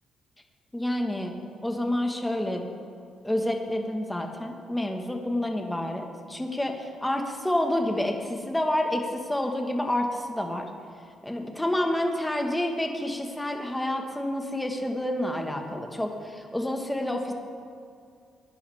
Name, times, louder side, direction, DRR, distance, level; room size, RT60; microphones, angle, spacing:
voice 1, 0.7-1.4 1.6-2.6 3.2-10.7 11.2-17.3, left 1 dB, 10° left, 3 dB, 1.5 m, -28 dB
17.5 x 10.5 x 3.5 m, 2.3 s
cardioid pair, 90°, 0 cm